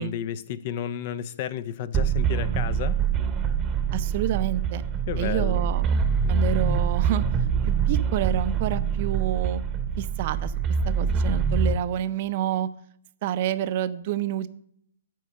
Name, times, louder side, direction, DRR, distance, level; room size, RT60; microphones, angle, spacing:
voice 1, 0.0-3.0 5.1-5.7, left 10 dB, 45° left, 16 dB, 0.5 m, -32 dB
sound 1, 1.9-11.7, right 6 dB, 20° right, 0.9 m, -25 dB
voice 2, 3.9-4.8 5.2-7.2 7.6-9.6 10.0-10.5 10.9-12.7 13.2-14.5, right 11 dB, 45° right, 13 dB, 0.5 m, -28 dB
9.2 x 4.6 x 6.5 m, 0.68 s
figure-of-eight pair, 125°, 0 cm